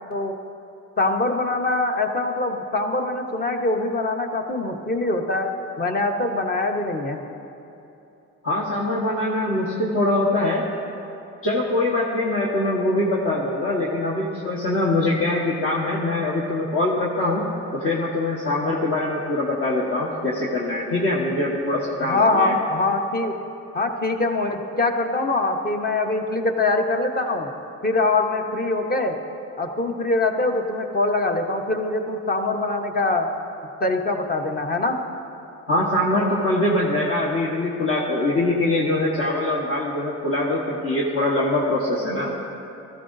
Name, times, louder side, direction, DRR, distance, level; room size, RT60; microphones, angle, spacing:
voice 1, 1.0-7.2 22.0-23.3 23.7-27.5 27.8-29.2 29.6-33.3 33.8-35.0, left 2 dB, 30° left, 4 dB, 1.1 m, -23 dB
voice 2, 8.4-10.6 11.4-17.4 17.7-22.5 35.7-42.3, left 2 dB, 50° left, -4 dB, 1.4 m, -23 dB
15.5 x 13.5 x 2.7 m, 2.9 s
cardioid pair, 90°, 30 cm